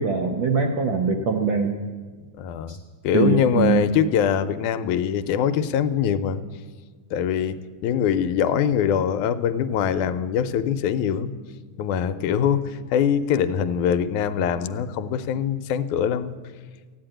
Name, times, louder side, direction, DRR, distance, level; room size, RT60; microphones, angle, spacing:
voice 1, 0.0-1.8 2.7-2.8 3.1-3.8, right 5 dB, 90° right, 4 dB, 1.0 m, -22 dB
voice 2, 2.4-2.8 3.0-6.4 7.1-11.3 11.8-16.4, left 8 dB, 80° left, 11 dB, 2.1 m, -23 dB
14.5 x 9.7 x 8.9 m, 1.5 s
omnidirectional pair, 3.5 m